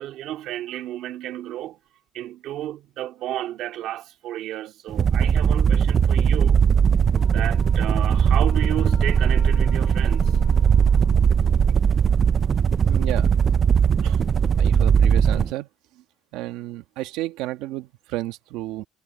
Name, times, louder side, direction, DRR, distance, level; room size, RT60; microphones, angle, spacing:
voice 1, 0.0-1.8 2.1-6.7 7.3-10.4, right 13 dB, 55° right, 2.6 m, -32 dB
sound 1, 4.9-15.5, right 7 dB, 25° right, 0.3 m, -19 dB
Wind instrument woodwind instrument, 7.2-11.3, left 14 dB, 60° left, 3.6 m, -49 dB
voice 2, 12.8-13.3 14.0-14.3 14.6-15.7 15.9-16.0 16.3-18.9, right 16 dB, 90° right, 1.4 m, -32 dB
cardioid pair, 175°, 0 cm